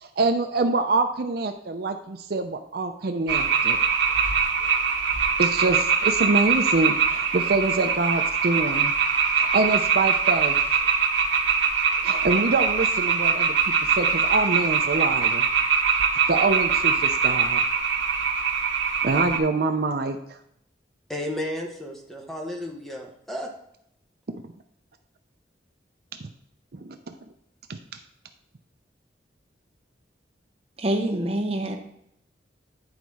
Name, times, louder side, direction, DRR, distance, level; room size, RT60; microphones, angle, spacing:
voice 1, 0.0-3.8 5.4-8.9 9.4-10.6 12.0-13.6 14.0-15.5 16.3-17.6 19.0-20.2 24.3-24.4 26.7-27.0 27.7-27.8, right 3 dB, 55° right, 6 dB, 0.6 m, -25 dB
sound 1, 3.3-19.4, right 6 dB, 85° right, 1.1 m, -23 dB
voice 2, 21.1-23.5, left 1 dB, ahead, 0 dB, 1.1 m, -33 dB
voice 3, 30.8-31.8, right 1 dB, 35° right, 4 dB, 0.9 m, -25 dB
9.7 x 4.0 x 4.8 m, 0.73 s
head